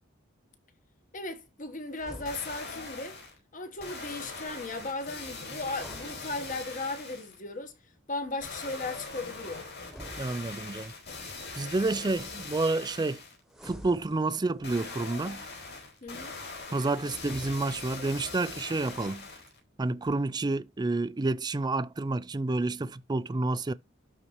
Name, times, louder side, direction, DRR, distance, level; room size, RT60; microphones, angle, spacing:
voice 1, 1.1-3.2 3.5-7.7 8.1-9.7 16.0-16.3, left 2 dB, 40° left, 1.4 m, -36 dB
sound 1, 1.9-2.9 5.6-6.9 9.8-11.0 13.5-14.7 17.1-18.1, equal, ahead, 1.1 m, -48 dB
sound 2, 2.1-3.4 3.8-7.4 8.4-13.4 14.6-19.6 20.1-20.2, left 3 dB, 55° left, 5.1 m, -42 dB
voice 2, 10.2-10.9 11.5-13.2 13.6-15.4 16.7-19.3 19.8-23.7, right 2 dB, 20° right, 0.4 m, -29 dB
12.0 x 4.2 x 3.1 m
head